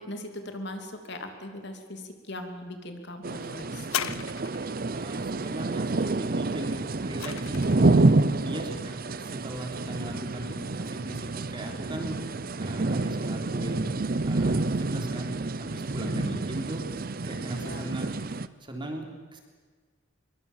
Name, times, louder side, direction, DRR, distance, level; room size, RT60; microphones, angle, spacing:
voice 1, 0.1-3.9 16.0-16.4 17.5-17.9, left 1 dB, 55° left, 5 dB, 2.9 m, -39 dB
sound 1, 3.2-18.5, right 2 dB, 45° right, 0.7 m, -28 dB
sound 2, 3.8-4.9 6.6-8.0 8.8-8.9, left 9 dB, 85° left, 0.8 m, -35 dB
voice 2, 4.9-8.0 8.4-12.2 12.6-16.9 17.2-18.2 18.6-19.4, right 1 dB, 25° right, 2 dB, 3.5 m, -39 dB
25.5 x 22.5 x 7.3 m, 1.5 s
head